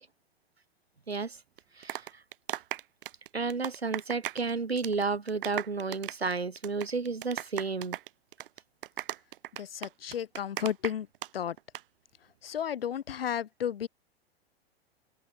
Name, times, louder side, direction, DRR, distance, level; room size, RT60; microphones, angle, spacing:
voice 1, 1.1-1.4 1.8-2.2 3.3-8.0, right 4 dB, 80° right, 7.2 m, -32 dB
sound 1, 1.6-4.5 4.8-5.0 5.3-11.3 11.6-11.8, right 13 dB, 60° right, 2.0 m, -37 dB
voice 2, 9.6-11.1 11.3-11.6 12.4-13.9, left 9 dB, 70° left, 2.3 m, -33 dB
open air
figure-of-eight pair, 95°, 31 cm